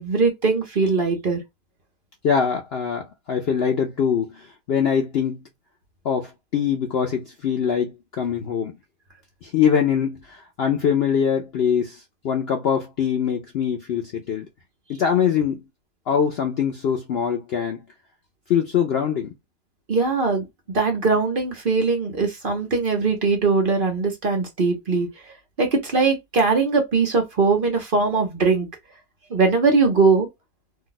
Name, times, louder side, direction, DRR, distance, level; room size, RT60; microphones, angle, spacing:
voice 1, 0.0-1.4 19.9-20.5 20.7-25.1 25.6-28.7 29.3-30.3, right 4 dB, 45° right, 0.8 m, -20 dB
voice 2, 2.2-5.4 6.0-8.8 9.4-14.5 15.0-15.6 16.1-17.8 18.5-19.3, left 7 dB, 90° left, 0.5 m, -23 dB
2.7 x 2.2 x 3.9 m
omnidirectional pair, 1.7 m